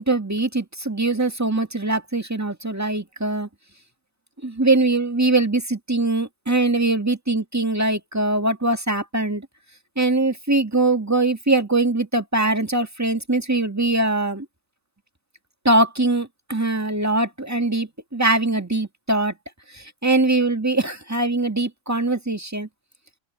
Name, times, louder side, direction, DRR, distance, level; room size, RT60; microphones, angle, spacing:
voice 1, 0.0-3.5 4.4-9.5 10.0-14.4 15.6-19.3 19.7-22.7, right 2 dB, 10° right, 1.7 m, -22 dB
open air
omnidirectional pair, 1.5 m